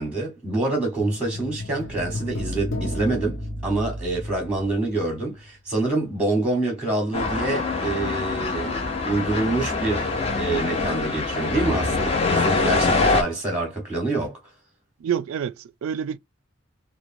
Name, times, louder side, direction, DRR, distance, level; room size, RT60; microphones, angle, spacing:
voice 1, 0.0-14.4, right 2 dB, 5° right, 0.9 m, -26 dB
sound 1, 1.0-5.4 5.7-5.8, left 1 dB, 70° left, 0.7 m, -33 dB
sound 2, 7.1-13.2, left 3 dB, 30° left, 0.6 m, -24 dB
voice 2, 15.0-16.2, right 8 dB, 90° right, 0.3 m, -28 dB
3.0 x 2.1 x 2.5 m
head